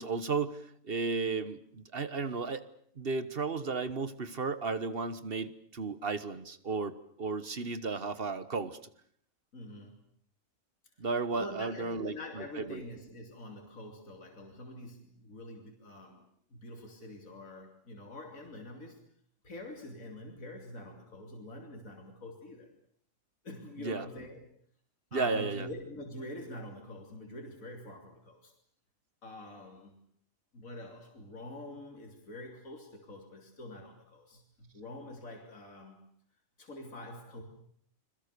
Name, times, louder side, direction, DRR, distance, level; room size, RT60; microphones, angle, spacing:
voice 1, 0.0-2.7 3.0-8.8 11.0-12.8 23.8-24.1 25.1-25.7, right 4 dB, 45° right, 14 dB, 1.5 m, -34 dB
voice 2, 9.5-10.0 11.3-16.2 16.5-19.0 19.4-22.7 23.4-24.4 25.1-28.5 29.2-30.0 30.5-36.0 36.6-37.4, left 1 dB, 80° left, 2 dB, 3.6 m, -45 dB
29.5 x 22.0 x 6.8 m, 0.62 s
omnidirectional pair, 1.4 m